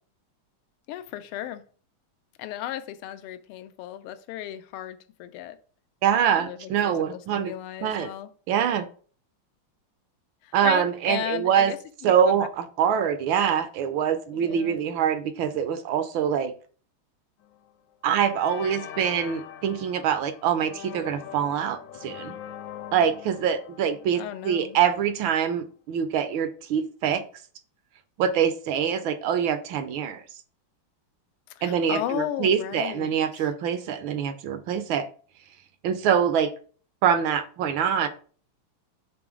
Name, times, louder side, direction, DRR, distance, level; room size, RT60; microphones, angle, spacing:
voice 1, 0.9-1.6 2.4-5.6 6.4-8.3 10.4-11.8 12.0-12.5 14.3-14.8 24.1-24.8 31.5-33.5, left 12 dB, 85° left, 1.5 m, -35 dB
voice 2, 6.0-7.5 7.8-8.1 8.5-8.9 10.5-11.7 12.0-16.5 18.0-22.3 22.9-27.2 28.2-30.2 31.6-35.1 35.8-36.5 37.0-38.1, right 8 dB, 70° right, 1.3 m, -24 dB
sound 1, 17.4-17.7 18.2-25.0, left 10 dB, 70° left, 1.2 m, -42 dB
6.1 x 3.7 x 4.9 m
omnidirectional pair, 2.4 m